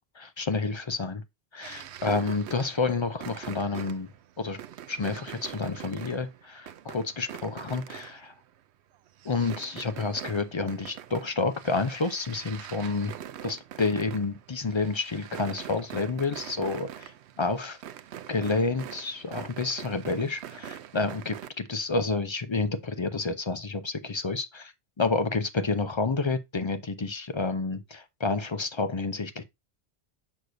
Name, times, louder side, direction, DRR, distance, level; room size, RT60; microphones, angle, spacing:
voice 1, 0.2-1.2 1.5-4.1 4.4-4.6 4.9-8.3 9.2-13.1 13.4-17.1 17.4-17.8 18.3-29.4, left 3 dB, 40° left, 0.4 m, -29 dB
sound 1, 1.6-8.6 8.9-21.5, right 10 dB, 85° right, 0.9 m, -44 dB
6.4 x 6.3 x 2.6 m
omnidirectional pair, 1.1 m